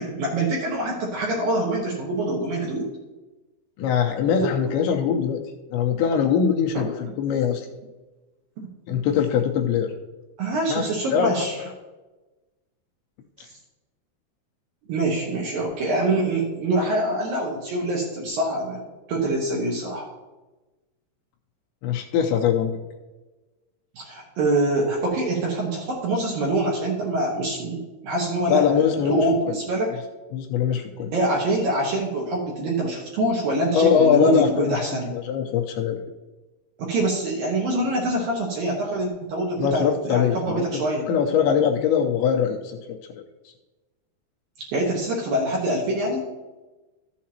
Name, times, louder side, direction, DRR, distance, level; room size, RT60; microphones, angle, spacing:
voice 1, 0.0-2.8 4.4-4.5 6.7-6.8 8.6-8.7 10.4-11.6 13.4-13.5 14.9-18.8 19.1-20.1 24.0-29.9 31.1-35.1 36.8-41.1 44.7-46.2, right 1 dB, 70° right, -2 dB, 2.3 m, -25 dB
voice 2, 3.8-5.4 5.7-7.7 8.9-9.9 10.7-11.7 21.8-22.8 28.5-29.3 30.3-31.1 33.7-34.8 35.1-36.0 39.6-43.0, left 7 dB, 80° left, 2 dB, 2.8 m, -22 dB
14.0 x 7.4 x 2.9 m, 1.2 s
omnidirectional pair, 5.6 m